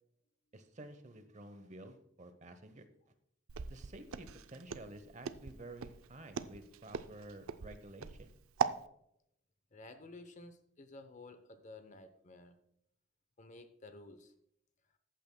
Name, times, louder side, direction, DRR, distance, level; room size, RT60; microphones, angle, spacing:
voice 1, 0.5-2.9 3.7-8.3, right 1 dB, 35° right, 10 dB, 0.8 m, -51 dB
Walk footsteps, 3.5-8.8, right 7 dB, 80° right, 0.5 m, -39 dB
voice 2, 9.7-12.6 13.4-14.3, left 2 dB, 35° left, 10 dB, 0.8 m, -53 dB
14.0 x 8.8 x 2.2 m, 0.74 s
head